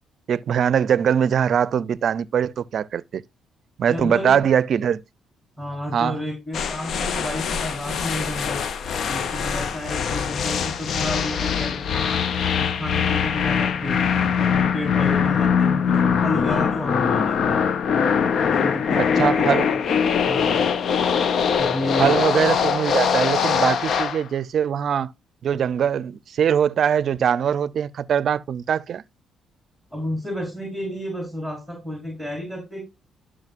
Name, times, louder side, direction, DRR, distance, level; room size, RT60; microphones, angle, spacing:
voice 1, 0.3-3.2 3.8-5.0 5.9-6.2 19.0-19.7 22.0-25.1 25.4-29.0, right 8 dB, 60° right, 0.5 m, -22 dB
voice 2, 3.9-4.5 5.6-8.6 9.1-12.2 12.6-17.8 18.5-19.8 20.2-20.7 21.6-22.2 29.9-32.8, left 1 dB, 10° left, 4.5 m, -31 dB
sound 1, 6.5-24.2, left 7 dB, 60° left, 0.6 m, -22 dB
12.0 x 6.2 x 2.5 m
cardioid pair, 90°, 0 cm